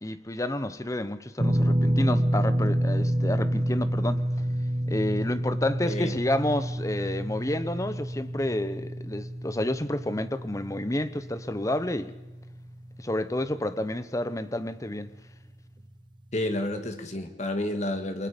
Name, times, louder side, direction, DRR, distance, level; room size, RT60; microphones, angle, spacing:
voice 1, 0.0-4.2 4.9-12.1 13.0-15.1, left 1 dB, 20° left, 0.9 m, -30 dB
sound 1, 1.4-13.6 13.9-14.1 15.8-15.9, equal, 25° right, 1.4 m, -28 dB
voice 2, 5.8-6.2 16.3-18.3, left 1 dB, 40° left, 2.2 m, -30 dB
29.0 x 23.0 x 5.3 m
head